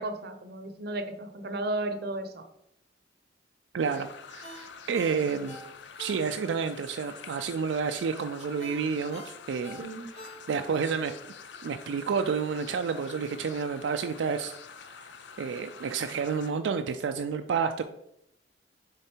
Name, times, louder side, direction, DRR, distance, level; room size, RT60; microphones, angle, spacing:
voice 1, 0.0-2.5 9.8-10.1, right 2 dB, 60° right, 8 dB, 0.7 m, -34 dB
voice 2, 3.7-5.6 6.0-9.8 10.5-11.1 11.6-14.5 14.9-15.0 15.4-17.8, right 6 dB, 90° right, 7 dB, 0.3 m, -30 dB
sound 1, 3.8-16.5, left 6 dB, 75° left, 0.5 m, -47 dB
Ringtone, 4.4-6.7 7.1-7.2 8.6-10.8 11.2-11.3, left 1 dB, 40° left, 1.2 m, -47 dB
6.5 x 3.7 x 4.5 m, 0.79 s
head